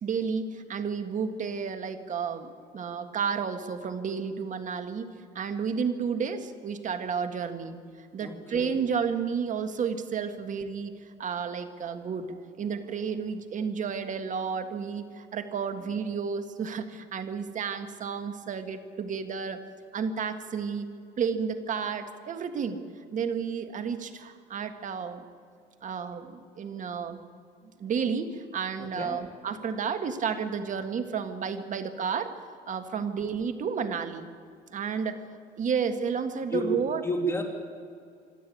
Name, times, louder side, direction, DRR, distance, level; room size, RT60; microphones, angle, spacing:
voice 1, 0.0-5.1 5.4-19.6 19.9-20.9 21.2-22.8 23.1-25.2 25.8-27.2 27.8-32.3 32.7-34.3 34.7-35.2 35.6-37.0, right 6 dB, 50° right, 8 dB, 1.8 m, -31 dB
voice 2, 8.2-8.8 28.8-29.2 36.5-37.4, right 1 dB, 15° left, 2 dB, 2.7 m, -31 dB
25.5 x 12.5 x 8.6 m, 2.3 s
cardioid pair, 110°, 17 cm